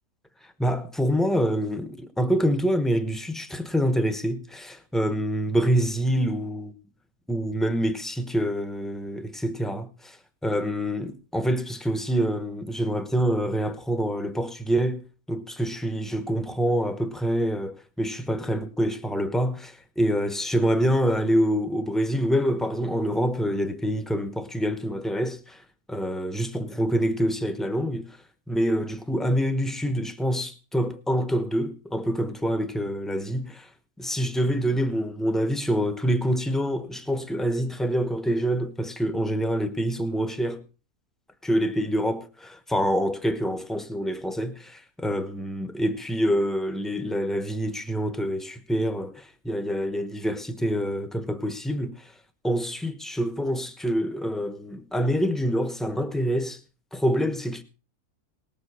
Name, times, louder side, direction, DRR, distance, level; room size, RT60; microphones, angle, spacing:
voice 1, 0.6-6.7 7.3-10.2 10.4-15.0 15.3-25.6 25.9-28.2 28.5-33.7 34.0-40.6 41.4-52.1 52.4-56.6 56.9-57.6, equal, ahead, 0.8 m, -26 dB
19.0 x 7.5 x 4.8 m
omnidirectional pair, 1.6 m